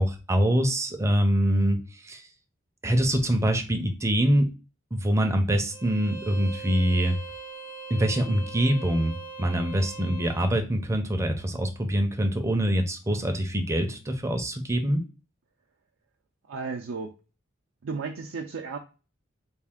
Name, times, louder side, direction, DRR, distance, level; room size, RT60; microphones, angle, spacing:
voice 1, 0.0-2.3 2.8-4.5 4.9-7.2 7.9-15.0, equal, 15° right, 5 dB, 0.6 m, -24 dB
Bowed string instrument, 5.7-10.5, right 4 dB, 60° left, 1.5 m, -41 dB
voice 2, 16.5-17.2 17.8-18.8, right 4 dB, 75° right, 1 dB, 0.5 m, -34 dB
3.4 x 2.4 x 3.6 m, 0.32 s
head